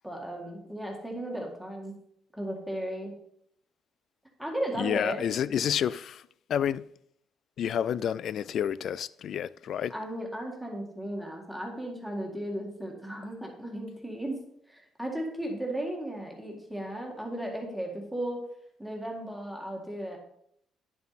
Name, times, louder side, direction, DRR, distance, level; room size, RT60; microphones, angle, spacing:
voice 1, 0.0-2.0 2.3-3.2 4.4-5.2 9.9-14.4 14.7-18.4 18.8-20.2, right 1 dB, ahead, 1.9 m, -35 dB
voice 2, 4.8-6.2 6.5-6.9 7.6-9.9, left 9 dB, 50° left, 0.3 m, -29 dB
10.5 x 7.2 x 4.2 m
cardioid pair, 150°, 0 cm